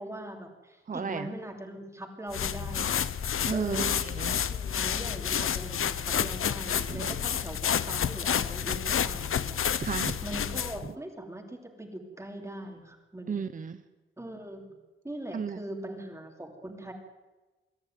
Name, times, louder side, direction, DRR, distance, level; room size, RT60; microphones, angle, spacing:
voice 1, 0.0-3.0 3.5-3.9 4.5-9.6 10.2-13.5 14.2-14.8 15.0-16.9, right 1 dB, 15° right, 3 dB, 2.9 m, -41 dB
voice 2, 0.9-1.3 3.5-4.4 6.9-7.2 9.8-10.2 10.8-10.9 13.3-13.8 15.3-15.6, right 6 dB, 40° right, 10 dB, 0.8 m, -34 dB
sound 1, 2.3-10.9, left 8 dB, 85° left, 0.8 m, -30 dB
23.0 x 14.0 x 9.2 m, 1.1 s
wide cardioid pair, 180°, 21 cm